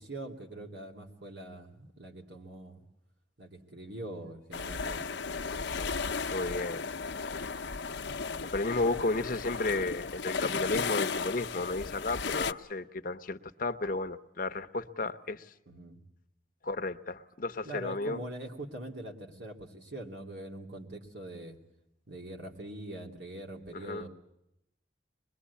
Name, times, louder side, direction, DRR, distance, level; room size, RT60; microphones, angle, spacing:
voice 1, 0.0-2.8 3.4-5.1 15.7-16.0 17.6-21.6 22.1-24.1, right 1 dB, 75° right, 1 dB, 2.9 m, -43 dB
sound 1, 4.5-12.5, left 5 dB, 80° left, 0.8 m, -35 dB
voice 2, 6.3-6.9 8.0-8.1 8.4-15.5 16.6-18.2 23.7-24.0, left 2 dB, 50° left, 10 dB, 0.9 m, -33 dB
24.0 x 21.5 x 8.4 m, 0.84 s
head